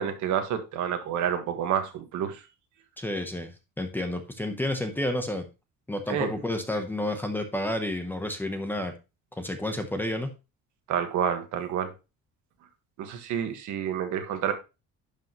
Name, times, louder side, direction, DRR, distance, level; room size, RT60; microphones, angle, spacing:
voice 1, 0.0-2.4 6.1-6.3 10.9-11.9 13.0-14.5, right 8 dB, 65° right, 1.6 m, -29 dB
voice 2, 3.0-3.5 3.8-5.5 5.9-8.9 9.4-10.3, left 1 dB, 5° left, 0.8 m, -30 dB
11.5 x 5.2 x 3.0 m
cardioid pair, 165°, 32 cm